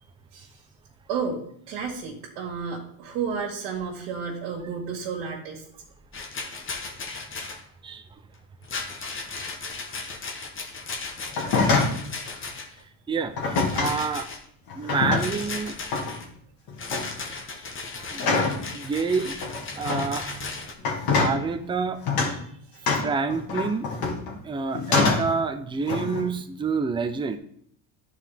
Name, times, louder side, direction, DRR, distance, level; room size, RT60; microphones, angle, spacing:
voice 1, 1.1-5.6 11.7-12.0 22.7-22.9, right 6 dB, 80° right, -5 dB, 2.0 m, -32 dB
Rattle, 6.1-7.6 8.6-12.8 13.5-14.4 15.1-16.3 16.8-20.7, left 4 dB, 25° left, 1.0 m, -36 dB
sound 1, 11.3-12.0 13.4-14.0 14.7-15.5 15.9-16.2 16.7-17.1 18.2-18.6 19.4-20.1 20.8-21.4 22.1-22.4 22.9-24.3 24.8-25.4 25.9-26.3, left 4 dB, 50° left, 1.9 m, -25 dB
voice 2, 13.1-14.3 14.8-16.0 18.1-19.4 19.7-20.6 21.1-22.0 23.0-23.9 24.4-27.4, right 5 dB, 10° right, 7 dB, 0.5 m, -28 dB
11.5 x 4.7 x 3.5 m, 0.65 s
supercardioid pair, 120°, 46 cm